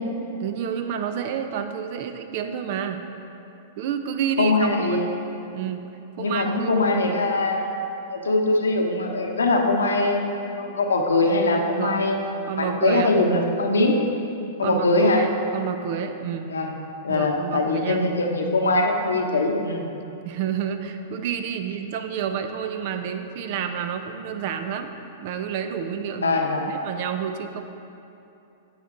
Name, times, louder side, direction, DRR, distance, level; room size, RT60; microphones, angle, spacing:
voice 1, 0.4-3.0 3.8-5.0 5.5-5.8 6.2-6.7 11.6-12.1 12.4-13.1 14.6-16.5 17.1-18.0 20.2-24.9 25.2-26.4 26.7-27.6, right 8 dB, 55° right, 7 dB, 0.7 m, -29 dB
voice 2, 4.4-5.1 6.2-12.2 12.6-14.0 14.6-15.2 16.5-16.8 17.0-19.9 26.2-26.6, left 2 dB, 90° left, 2 dB, 1.0 m, -22 dB
9.4 x 7.2 x 3.8 m, 2.8 s
hypercardioid pair, 110°, 0 cm